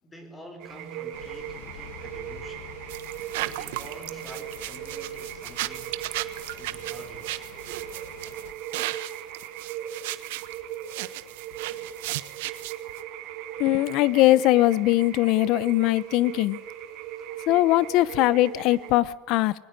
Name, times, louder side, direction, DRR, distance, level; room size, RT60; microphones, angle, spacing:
voice 1, 0.0-2.8 3.3-6.0 6.5-7.5, right 1 dB, 10° left, 7 dB, 5.0 m, -48 dB
sound 1, 0.6-19.0, right 10 dB, 55° right, 3.7 m, -38 dB
sound 2, 1.1-8.5, left 8 dB, 80° left, 2.4 m, -47 dB
sound 3, 2.9-13.0, right 18 dB, 80° right, 1.3 m, -35 dB
voice 2, 13.6-16.6 17.5-19.5, left 17 dB, 55° left, 19 dB, 1.0 m, -21 dB
22.0 x 20.0 x 9.2 m, 1.0 s
supercardioid pair, 140°, 0 cm